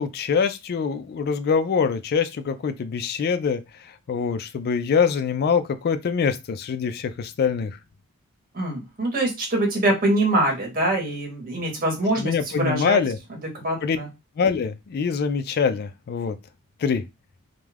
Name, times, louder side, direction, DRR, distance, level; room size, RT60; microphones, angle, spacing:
voice 1, 0.0-3.6 4.1-7.7 12.2-13.2 13.8-14.0 14.4-16.3 16.8-17.0, left 6 dB, 45° left, 0.3 m, -24 dB
voice 2, 8.5-13.0 13.5-14.1, right 1 dB, 40° right, 1.0 m, -24 dB
2.3 x 2.2 x 3.2 m
head